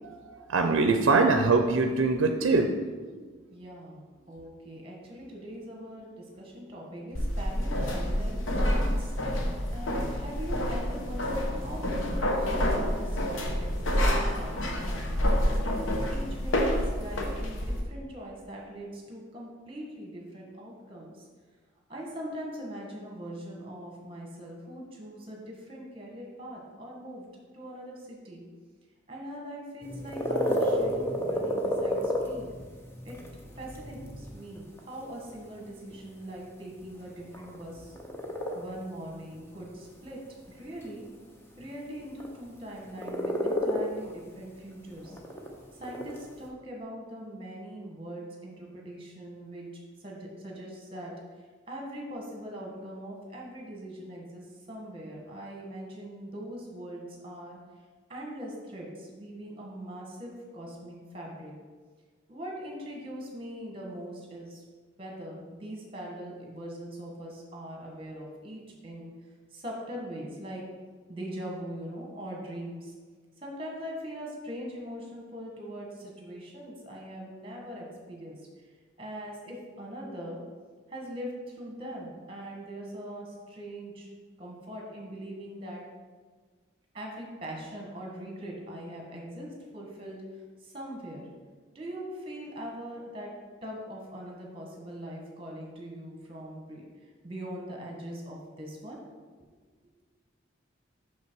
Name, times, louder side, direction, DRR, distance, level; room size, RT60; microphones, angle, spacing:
voice 1, 0.0-2.7, right 3 dB, 80° right, 6 dB, 0.5 m, -23 dB
voice 2, 3.5-4.0 4.3-9.1 9.7-15.5 16.1-21.2 21.9-27.2 27.5-28.4 29.1-32.5 33.0-33.2 33.6-37.9 38.5-40.2 40.5-41.0 41.6-45.2 45.7-49.7 50.0-51.1 51.7-57.6 58.1-61.5 62.3-64.6 65.0-69.1 69.5-70.6 71.1-72.9 73.4-78.4 79.0-80.4 80.9-84.1 84.4-85.8 86.9-90.2 90.6-91.3 91.7-93.3 93.6-96.9 97.2-99.0, equal, 25° right, -1 dB, 1.4 m, -41 dB
sound 1, 7.1-17.8, equal, 85° left, 0.9 m, -28 dB
sound 2, 29.8-46.5, left 1 dB, 10° left, 0.7 m, -33 dB
6.0 x 5.7 x 4.6 m, 1.5 s
head